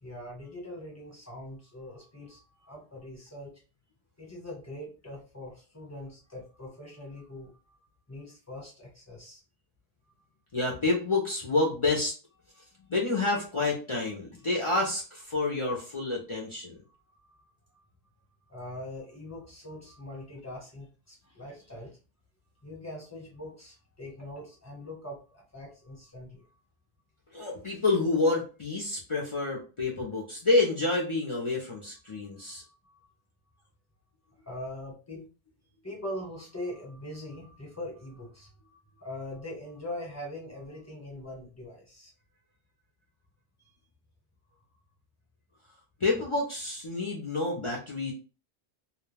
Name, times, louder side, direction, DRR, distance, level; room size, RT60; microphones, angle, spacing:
voice 1, 0.0-3.5 4.2-7.8 8.1-9.4 12.6-12.7 17.2-17.5 17.7-17.8 18.5-22.0 22.6-26.5 32.1-33.0 34.5-35.3 35.8-42.1, left 1 dB, 15° left, -2 dB, 1.0 m, -42 dB
voice 2, 10.5-12.1 12.9-16.8 27.3-32.6 46.0-48.1, left 3 dB, 35° left, -2 dB, 0.5 m, -28 dB
2.3 x 2.2 x 3.2 m, 0.34 s
omnidirectional pair, 1.1 m